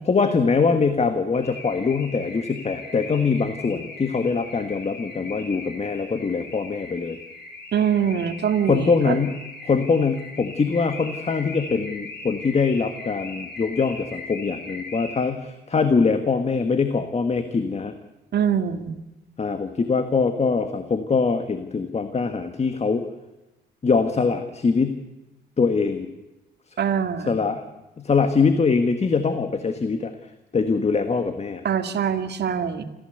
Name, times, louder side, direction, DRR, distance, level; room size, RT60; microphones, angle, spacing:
voice 1, 0.0-7.2 8.7-9.4 9.6-17.9 19.4-23.1 23.8-25.0 25.6-26.1 27.3-27.7 28.0-30.1 30.5-31.6, left 4 dB, 35° left, 9 dB, 1.7 m, -23 dB
Car / Alarm, 1.3-15.5, left 3 dB, 55° left, 6.3 m, -39 dB
voice 2, 7.7-9.2 18.3-19.0 26.8-27.4 31.6-32.8, right 8 dB, 55° right, 8 dB, 2.1 m, -24 dB
26.0 x 15.5 x 8.1 m, 1.0 s
cardioid pair, 90°, 20 cm